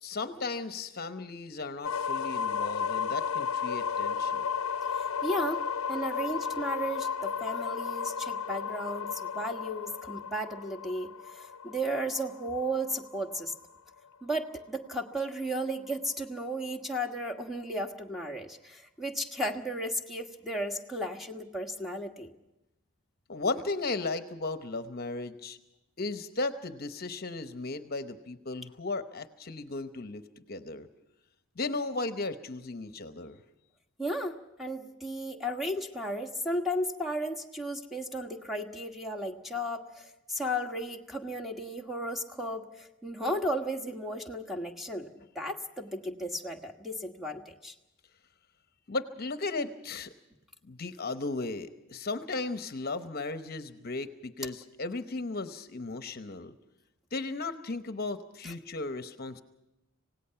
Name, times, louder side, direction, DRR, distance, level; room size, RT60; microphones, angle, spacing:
voice 1, 0.0-4.5 23.3-25.6 26.0-30.9 31.6-33.4 48.9-50.1 50.6-56.5 57.1-59.4, left 3 dB, 45° left, 10 dB, 0.9 m, -35 dB
sound 1, 1.8-13.6, left 6 dB, 80° left, 0.6 m, -33 dB
voice 2, 5.0-13.5 14.2-22.3 34.0-47.7 58.4-58.5, equal, ahead, 2 dB, 1.3 m, -34 dB
26.5 x 17.5 x 5.7 m, 0.94 s
head